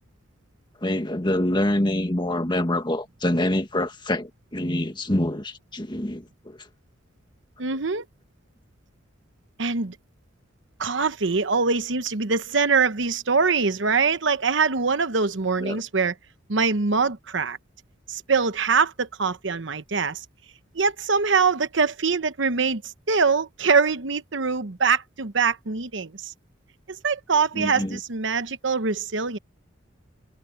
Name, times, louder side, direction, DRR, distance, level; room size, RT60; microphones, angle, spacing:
voice 1, 0.8-6.6 15.6-15.8 27.5-28.0, left 1 dB, 25° left, 1.8 m, -26 dB
voice 2, 7.6-8.0 9.6-9.9 10.8-16.1 16.5-17.6 18.1-20.2 20.7-22.8 23.1-26.3 27.0-29.4, right 5 dB, 70° right, 1.0 m, -23 dB
head